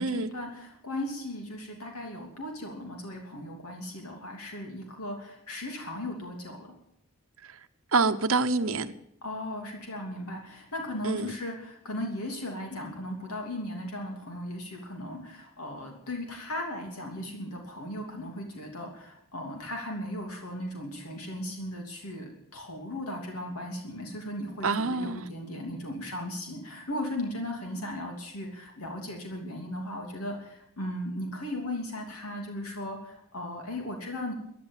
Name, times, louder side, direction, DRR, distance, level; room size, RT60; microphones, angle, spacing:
voice 1, 0.0-6.7 9.2-34.3, left 1 dB, 85° left, 3.0 m, -37 dB
voice 2, 7.9-8.9 11.0-11.3 24.6-25.3, right 3 dB, 70° right, 0.9 m, -26 dB
14.5 x 10.5 x 9.0 m
head